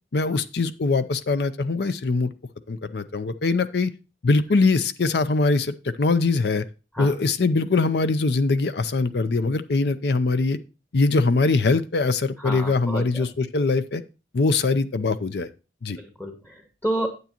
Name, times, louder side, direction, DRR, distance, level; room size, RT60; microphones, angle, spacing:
voice 1, 0.1-2.3 2.7-3.9 4.2-6.6 7.0-10.6 10.9-14.0 14.3-15.5 15.8-16.0, left 3 dB, 60° left, 13 dB, 0.5 m, -22 dB
voice 2, 12.4-13.2 16.0-17.1, right 1 dB, 10° left, 4 dB, 0.9 m, -30 dB
9.3 x 8.2 x 3.0 m, 0.33 s
head